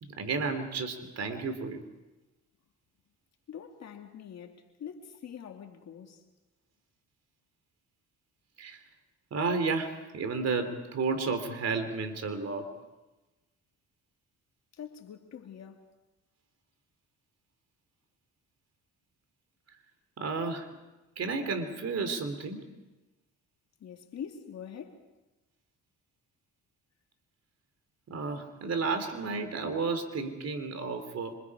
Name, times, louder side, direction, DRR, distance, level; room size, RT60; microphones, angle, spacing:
voice 1, 0.0-1.8 8.6-8.8 9.3-12.7 20.2-20.7 21.2-22.6 28.1-31.3, right 4 dB, 55° right, 3.4 m, -32 dB
voice 2, 3.5-6.2 14.7-15.9 23.8-25.0, left 8 dB, 60° left, 2.5 m, -44 dB
27.0 x 26.5 x 4.9 m
cardioid pair, 90°, 30 cm